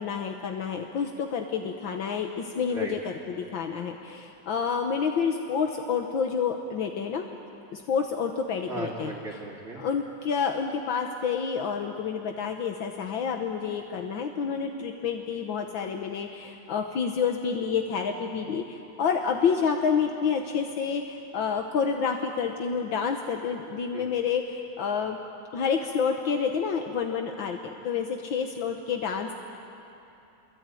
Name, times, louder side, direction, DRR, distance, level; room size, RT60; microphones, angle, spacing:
voice 1, 0.0-7.3 7.7-9.1 9.8-25.2 25.5-29.3, left 6 dB, 75° left, 4 dB, 1.9 m, -29 dB
voice 2, 8.7-9.8 23.9-24.1, right 3 dB, 30° right, -5 dB, 2.9 m, -36 dB
27.5 x 23.0 x 9.2 m, 2.9 s
omnidirectional pair, 2.1 m